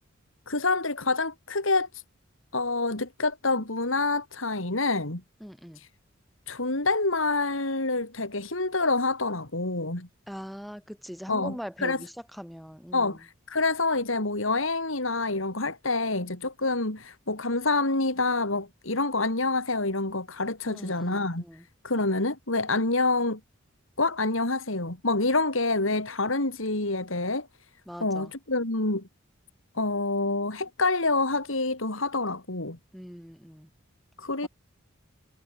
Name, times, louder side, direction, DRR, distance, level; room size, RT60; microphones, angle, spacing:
voice 1, 0.5-2.0 2.5-5.2 5.8-5.9 6.5-10.1 11.3-12.0 12.9-23.4 24.0-27.5 28.0-29.1 29.7-32.8 34.2-34.5, left 3 dB, 80° left, 4.2 m, -27 dB
voice 2, 5.4-5.8 10.3-13.2 20.6-21.7 27.9-28.3 32.9-33.7 34.4-34.5, equal, ahead, 4.4 m, -41 dB
head